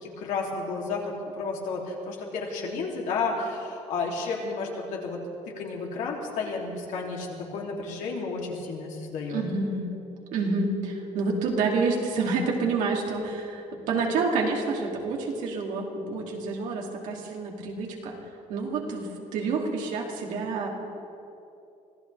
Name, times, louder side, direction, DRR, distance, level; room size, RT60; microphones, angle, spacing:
voice 1, 0.0-5.2 5.6-9.4, left 4 dB, 80° left, -1 dB, 2.9 m, -32 dB
voice 2, 9.3-9.9 10.3-18.2 18.5-20.7, right 4 dB, 90° right, -1 dB, 2.7 m, -28 dB
25.0 x 16.0 x 3.4 m, 2.8 s
cardioid pair, 155°, 13 cm